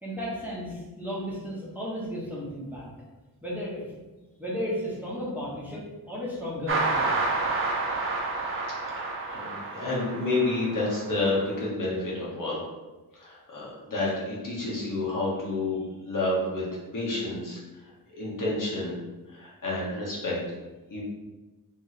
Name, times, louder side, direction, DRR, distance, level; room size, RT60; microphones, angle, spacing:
voice 1, 0.0-2.8 3.4-3.8 4.4-7.1, equal, 5° right, -8 dB, 1.2 m, -34 dB
sound 1, 6.7-11.5, right 3 dB, 35° right, 0.7 m, -30 dB
voice 2, 9.0-12.6 13.1-16.6 16.9-17.6 18.1-19.0 19.3-20.4 20.9-21.0, left 2 dB, 55° left, -5 dB, 1.3 m, -29 dB
3.6 x 3.2 x 4.1 m, 1.1 s
wide cardioid pair, 140°, 37 cm